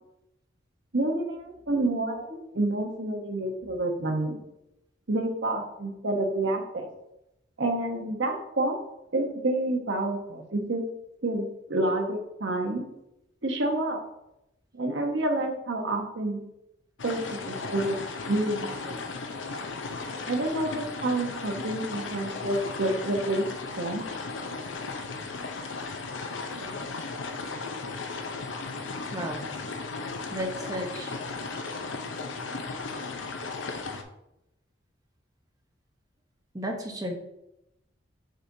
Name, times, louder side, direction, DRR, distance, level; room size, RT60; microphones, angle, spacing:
voice 1, 0.9-2.3 2.5-4.4 5.1-6.9 7.6-8.8 9.1-10.8 11.2-12.8 13.4-14.0 14.7-16.4 17.0-18.0 18.2-18.9 20.3-23.4 23.8-24.0 26.5-26.8, right 2 dB, 70° right, 3 dB, 1.0 m, -28 dB
sound 1, 17.0-34.0, left 3 dB, 80° left, 0.6 m, -36 dB
voice 2, 29.1-29.4 30.3-31.1 36.5-37.1, equal, 20° right, 1 dB, 0.9 m, -33 dB
6.4 x 6.0 x 2.7 m, 0.85 s
head